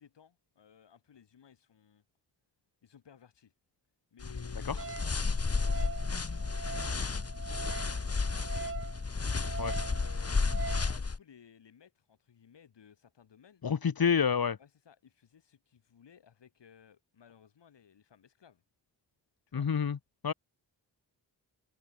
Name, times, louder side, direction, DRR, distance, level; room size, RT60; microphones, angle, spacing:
voice 1, 0.0-2.0 2.8-3.5 4.1-13.6 14.6-18.6 19.5-19.7, left 8 dB, 80° left, 7.8 m, -59 dB
sound 1, 4.2-11.2, left 4 dB, 35° left, 2.7 m, -32 dB
Wind instrument woodwind instrument, 4.8-10.9, right 4 dB, 30° right, 1.4 m, -43 dB
voice 2, 13.6-14.6 19.5-20.0 20.2-20.3, left 7 dB, 55° left, 2.4 m, -28 dB
cardioid pair, 80°, 42 cm